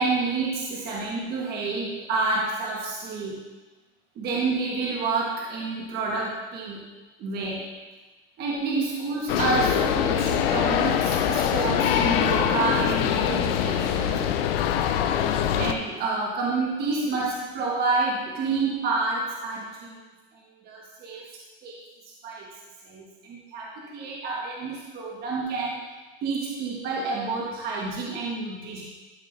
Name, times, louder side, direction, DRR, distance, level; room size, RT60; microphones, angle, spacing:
voice 1, 0.0-3.3 4.1-6.8 7.2-7.6 8.4-14.3 15.5-20.0 20.3-21.2 21.6-21.7 22.2-22.5 22.8-25.8 26.2-28.8, right 3 dB, 30° right, -3 dB, 1.4 m, -29 dB
sound 1, 9.3-15.7, left 9 dB, 65° left, 0.7 m, -23 dB
12.5 x 4.9 x 3.3 m, 1.2 s
supercardioid pair, 155°, 31 cm